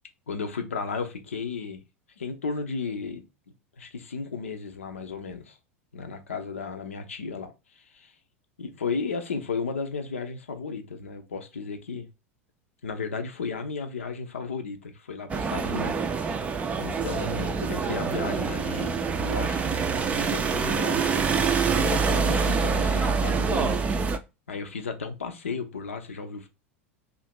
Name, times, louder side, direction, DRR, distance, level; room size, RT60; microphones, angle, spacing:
voice 1, 0.3-1.8 2.2-3.2 3.8-5.6 5.9-8.1 8.6-12.1 12.8-16.5 16.8-19.8 20.1-21.3 21.8-23.8 24.5-26.5, left 5 dB, 70° left, 0.7 m, -34 dB
sound 1, 15.3-24.2, right 5 dB, 20° right, 0.4 m, -26 dB
2.8 x 2.6 x 4.2 m
figure-of-eight pair, 85°, 7 cm